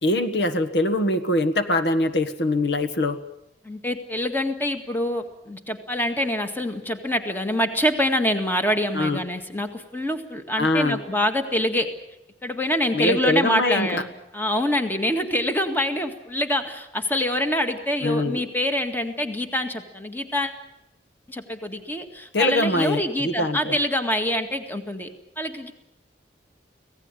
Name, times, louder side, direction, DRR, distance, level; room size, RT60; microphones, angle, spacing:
voice 1, 0.0-3.2 8.9-9.2 10.6-11.0 12.9-14.0 18.0-18.4 22.3-23.8, left 1 dB, 70° left, 9 dB, 1.5 m, -23 dB
voice 2, 3.6-11.9 12.4-20.5 21.3-25.1 25.4-25.7, left 1 dB, 10° left, 6 dB, 1.9 m, -25 dB
25.5 x 17.5 x 9.1 m, 0.83 s
head